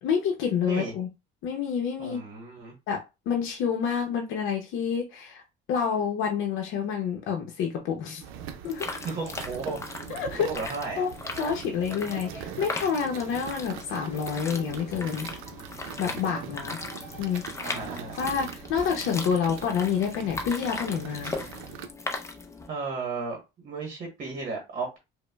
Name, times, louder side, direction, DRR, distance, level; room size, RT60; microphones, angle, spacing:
voice 1, 0.0-1.1 1.4-2.2 2.9-5.4 5.7-8.2 8.6-9.0 10.1-10.5 11.0-11.1 11.4-15.3 16.0-16.8 17.2-17.8 18.1-21.3, left 7 dB, 70° left, 0.7 m, -28 dB
voice 2, 2.0-2.7 9.0-9.8 10.4-11.0 15.9-16.6 17.6-18.1 22.7-25.0, right 4 dB, 40° right, 1.0 m, -35 dB
sound 1, 8.2-21.9, right 8 dB, 85° right, 0.6 m, -42 dB
sound 2, 8.6-22.7, left 3 dB, 15° left, 0.6 m, -39 dB
sound 3, 11.0-18.1, left 1 dB, 15° right, 1.6 m, -49 dB
5.0 x 2.2 x 2.2 m
cardioid pair, 140°, 21 cm